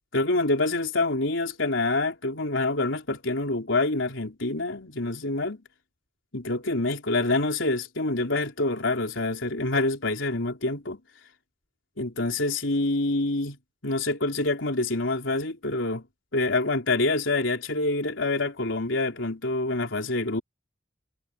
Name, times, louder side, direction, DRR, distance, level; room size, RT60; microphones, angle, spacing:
voice 1, 0.1-5.6 6.3-11.0 12.0-13.6 13.8-16.0 16.3-20.4, left 2 dB, 75° left, 4.0 m, -26 dB
head